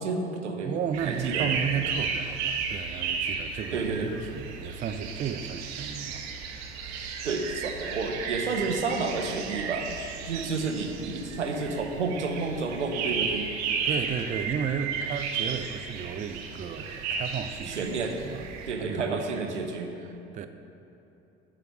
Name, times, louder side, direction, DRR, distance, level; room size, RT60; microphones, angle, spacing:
voice 1, 0.0-0.8 1.0-1.5 3.7-4.1 7.2-9.9 10.3-13.5 17.7-18.2 18.7-19.9, right 4 dB, 85° right, 3 dB, 0.7 m, -30 dB
voice 2, 0.6-3.9 4.2-6.2 13.8-17.8 18.2-18.4 18.7-20.5, right 7 dB, 25° right, 8 dB, 0.4 m, -34 dB
sound 1, 0.9-18.7, right 5 dB, 50° right, 0.8 m, -34 dB
9.0 x 3.3 x 6.2 m, 2.9 s
figure-of-eight pair, 55°, 34 cm